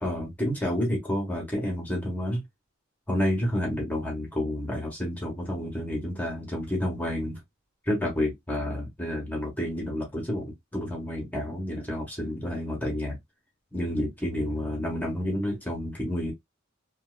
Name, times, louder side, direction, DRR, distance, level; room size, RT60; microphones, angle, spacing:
voice 1, 0.0-2.4 3.1-7.4 7.9-13.2 13.7-16.3, left 1 dB, 10° left, 1.3 m, -30 dB
3.0 x 2.8 x 2.3 m
head